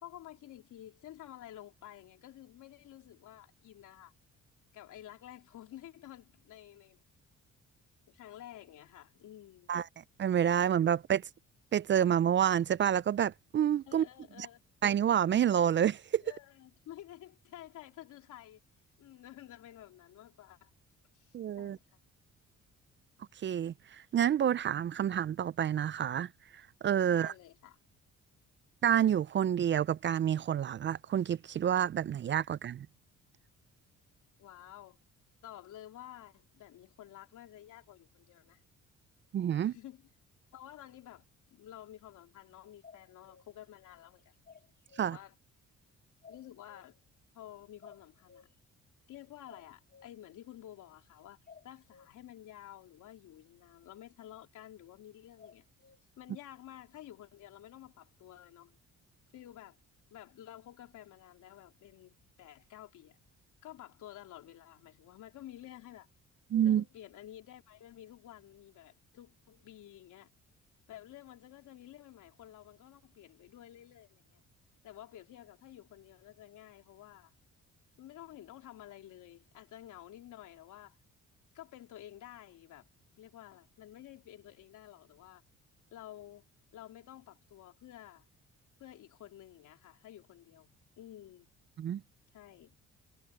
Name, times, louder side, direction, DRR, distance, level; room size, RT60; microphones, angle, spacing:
voice 1, 0.0-4.1 4.7-7.0 8.1-9.7 13.9-14.6 16.2-18.6 19.0-20.7 21.1-22.0 27.0-27.8 34.4-35.0 35.4-38.6 39.6-40.1 40.5-44.4 45.0-45.3 46.3-47.0 47.3-48.5 49.1-51.4 51.6-55.6 56.2-58.8 59.3-59.8 60.1-63.2 63.6-66.1 66.6-70.3 70.9-74.4 74.8-77.3 78.0-81.0 81.5-82.9 83.2-85.4 85.9-86.4 86.7-88.3 88.8-91.5 92.3-92.8, left 12 dB, 80° left, 3.5 m, -51 dB
voice 2, 10.2-11.2 11.7-14.1 14.8-16.2 21.3-21.8 23.4-26.3 26.8-27.3 28.8-32.9 39.3-39.7 45.0-45.2 66.5-66.8 91.8-92.0, right 9 dB, 40° right, 0.4 m, -28 dB
sound 1, 42.8-43.5 44.5-45.1 46.2-47.0 47.8-48.5 49.5-50.2 51.5-52.1 55.4-56.0, left 6 dB, 30° left, 3.9 m, -56 dB
cardioid pair, 90°, 30 cm